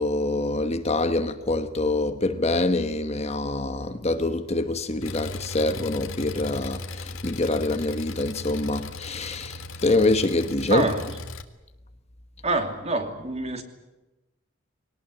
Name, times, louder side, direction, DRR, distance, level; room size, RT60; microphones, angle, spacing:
voice 1, 0.0-10.9, left 2 dB, 30° left, 1.2 m, -25 dB
Engine, 5.0-11.4, left 2 dB, 90° left, 1.9 m, -37 dB
voice 2, 10.7-11.0 12.4-13.6, right 2 dB, 30° right, 2.8 m, -26 dB
21.5 x 19.0 x 9.9 m
head